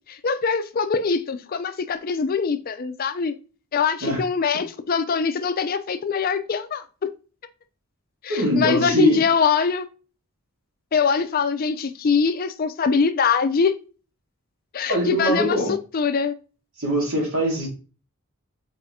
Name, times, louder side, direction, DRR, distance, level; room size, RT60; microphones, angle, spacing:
voice 1, 0.1-3.3 3.7-6.8 8.2-9.9 10.9-13.7 14.7-16.3, left 5 dB, 40° left, 0.4 m, -23 dB
voice 2, 8.3-9.2 14.9-15.7 16.8-17.7, equal, 65° right, 1.8 m, -22 dB
4.2 x 3.6 x 2.7 m
head